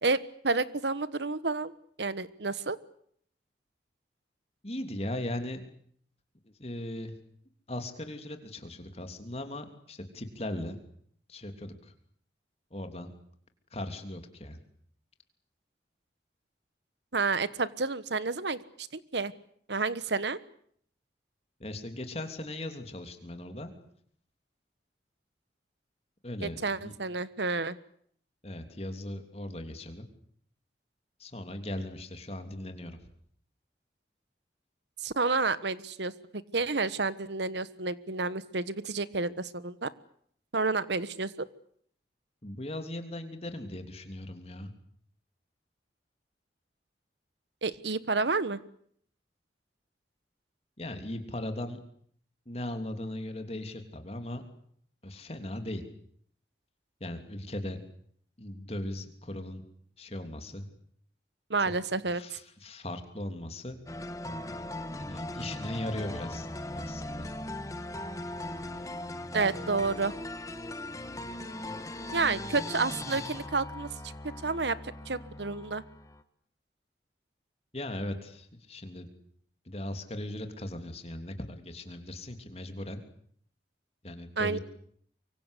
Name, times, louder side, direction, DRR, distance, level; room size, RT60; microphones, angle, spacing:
voice 1, 0.4-1.7 2.0-2.8 17.1-19.3 19.7-20.4 26.4-27.8 35.0-36.1 36.5-39.9 40.5-41.5 47.6-48.6 61.5-62.2 69.3-70.1 72.1-73.9 74.4-74.8 75.1-75.8 84.4-84.6, right 3 dB, 75° right, 16 dB, 1.3 m, -30 dB
voice 2, 4.6-5.6 6.4-7.1 7.7-10.8 11.3-11.9 12.7-13.1 13.7-14.6 21.6-23.7 26.2-26.9 28.4-30.1 31.2-33.0 42.4-44.7 50.8-51.8 52.4-54.4 55.0-55.8 57.0-57.8 58.4-59.6 60.0-60.7 61.6-61.7 62.1-63.8 65.0-67.3 77.7-79.1 79.6-83.0 84.0-84.6, left 1 dB, 35° left, 7 dB, 3.1 m, -38 dB
sound 1, 63.9-76.2, left 1 dB, 20° left, 1.5 m, -39 dB
24.5 x 24.0 x 8.4 m, 0.65 s
head